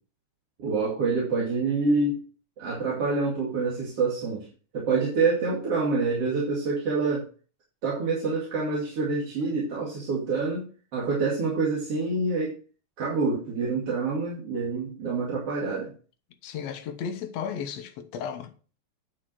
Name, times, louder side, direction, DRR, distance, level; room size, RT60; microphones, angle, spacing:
voice 1, 0.6-2.2 2.6-4.5 4.7-7.3 7.8-10.7 10.9-12.5 13.0-15.9, right 4 dB, 50° right, 3.3 m, -26 dB
voice 2, 16.4-18.5, left 7 dB, 65° left, 2.1 m, -34 dB
10.5 x 6.1 x 4.5 m
omnidirectional pair, 3.4 m